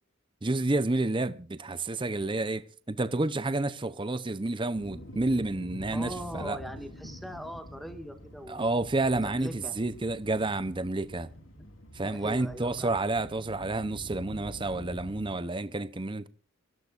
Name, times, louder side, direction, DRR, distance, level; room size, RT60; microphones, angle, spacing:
voice 1, 0.4-6.6 8.5-11.3 11.9-16.3, right 2 dB, 25° right, 0.7 m, -30 dB
sound 1, 4.7-15.3, equal, 65° left, 3.6 m, -46 dB
voice 2, 5.9-8.8 9.1-9.7 12.0-12.9, equal, ahead, 1.8 m, -41 dB
26.5 x 16.5 x 2.5 m
head